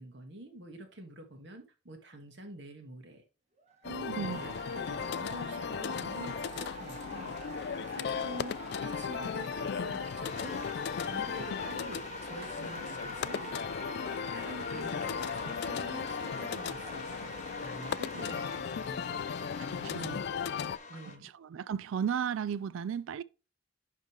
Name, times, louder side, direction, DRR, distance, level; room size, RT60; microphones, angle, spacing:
voice 1, 0.0-3.2 4.1-10.6 11.1-13.5 14.3-19.3 19.7-21.3, right 1 dB, 60° right, 1.6 m, -47 dB
sound 1, 3.6-18.6, right 4 dB, 35° right, 1.4 m, -47 dB
sound 2, 3.8-20.8, left 7 dB, 55° left, 0.3 m, -36 dB
voice 2, 3.8-4.4 19.6-20.2 21.1-23.2, right 8 dB, 80° right, 0.3 m, -35 dB
sound 3, 10.2-21.2, left 3 dB, 35° left, 1.0 m, -44 dB
10.5 x 3.8 x 3.2 m
head